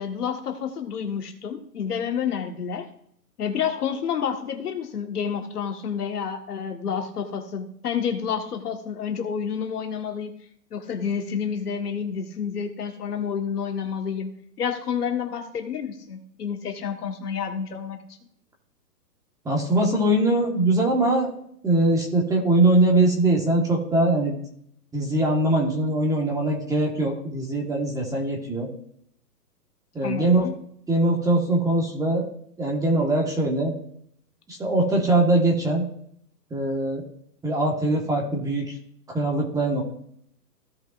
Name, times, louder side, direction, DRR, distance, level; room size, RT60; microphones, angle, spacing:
voice 1, 0.0-2.9 3.4-10.3 10.7-14.3 14.6-18.0 30.0-30.5, left 7 dB, 65° left, 4 dB, 1.8 m, -29 dB
voice 2, 19.4-21.3 21.6-24.4 24.9-28.7 29.9-30.5 30.9-32.3 32.6-33.7 34.5-35.8 36.5-37.0 37.4-38.8 39.1-39.8, right 2 dB, 5° right, 0 dB, 1.5 m, -22 dB
16.0 x 5.6 x 2.6 m, 0.69 s
hypercardioid pair, 145°, 50 cm